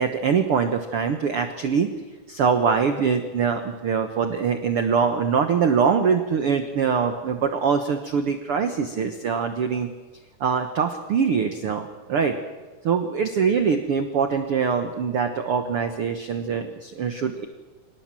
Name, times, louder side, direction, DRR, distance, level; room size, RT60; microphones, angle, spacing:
voice 1, 0.0-1.9 2.3-9.9 10.4-12.3 12.8-17.5, right 6 dB, 70° right, 7 dB, 1.3 m, -23 dB
25.5 x 19.0 x 7.6 m, 1.3 s
omnidirectional pair, 4.4 m